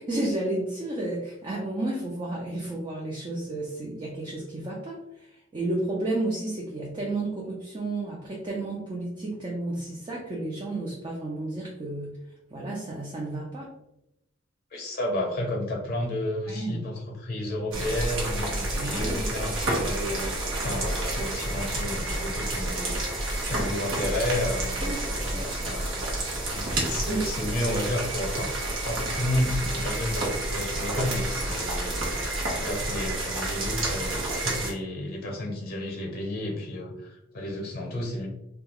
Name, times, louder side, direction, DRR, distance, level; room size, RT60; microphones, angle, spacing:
voice 1, 0.0-12.2 12.5-13.7 16.5-16.9 17.8-17.9 18.7-19.3 24.8-25.8 26.5-27.3, right 2 dB, 25° right, -3 dB, 0.4 m, -32 dB
voice 2, 14.7-20.4 20.6-22.9 23.4-24.9 25.2-26.0 26.5-28.5 28.8-31.9 32.6-38.3, left 1 dB, 50° left, 0 dB, 0.7 m, -31 dB
sound 1, 17.7-34.7, right 2 dB, 80° right, 0.9 m, -29 dB
2.7 x 2.3 x 2.9 m, 0.85 s
head